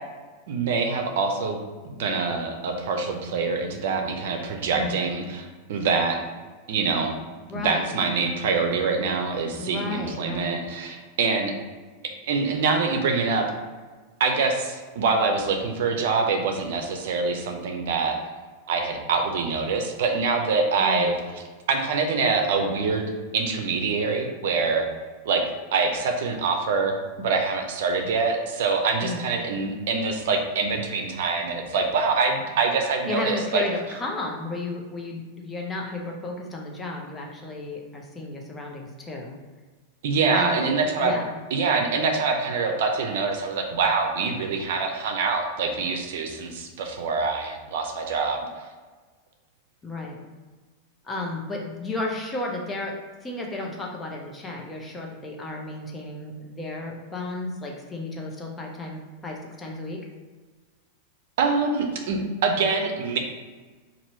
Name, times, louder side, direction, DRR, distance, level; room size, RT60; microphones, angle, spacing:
voice 1, 0.5-1.6 1.8-6.2 6.7-7.1 7.5-11.5 12.3-13.5 14.2-18.1 18.7-21.2 21.7-24.9 25.2-25.4 25.7-33.6 40.0-41.1 41.5-48.4 61.4-63.2, right 4 dB, 70° right, 4 dB, 0.6 m, -25 dB
voice 2, 4.7-5.1 7.5-7.9 9.6-10.5 20.8-21.1 29.0-29.3 33.1-39.4 40.3-41.4 49.8-50.2 51.0-52.9 53.2-60.0, left 2 dB, 15° left, 0 dB, 0.7 m, -33 dB
2.9 x 2.6 x 4.3 m, 1.4 s
hypercardioid pair, 125°, 0 cm